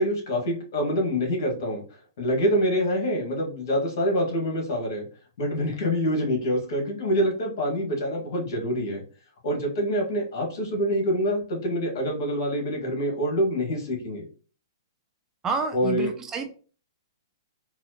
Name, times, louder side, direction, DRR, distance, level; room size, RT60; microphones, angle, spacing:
voice 1, 0.0-1.8 2.2-5.1 5.4-9.0 9.4-14.2 15.7-16.1, equal, 60° left, 1 dB, 1.5 m, -26 dB
voice 2, 15.4-16.5, right 5 dB, 20° right, 5 dB, 0.5 m, -29 dB
4.1 x 2.4 x 2.8 m, 0.39 s
hypercardioid pair, 125°, 2 cm